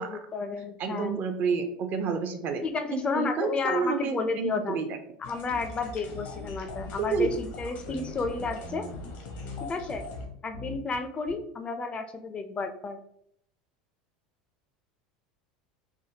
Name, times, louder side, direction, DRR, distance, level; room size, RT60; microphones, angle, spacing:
voice 1, 0.0-1.2 2.6-4.8 5.2-8.8 9.6-10.0 10.4-13.0, left 4 dB, 25° left, 7 dB, 0.4 m, -32 dB
voice 2, 0.8-2.6 2.9-5.0 7.0-7.3, right 5 dB, 45° right, 7 dB, 0.5 m, -29 dB
sound 1, 5.2-10.3, left 2 dB, 65° left, 0.8 m, -41 dB
sound 2, 6.1-7.5 7.9-9.0 9.4-9.9 10.1-11.0 11.3-11.4, left 3 dB, 70° right, 1.1 m, -41 dB
3.4 x 2.1 x 2.8 m, 0.71 s
hypercardioid pair, 90°, 4 cm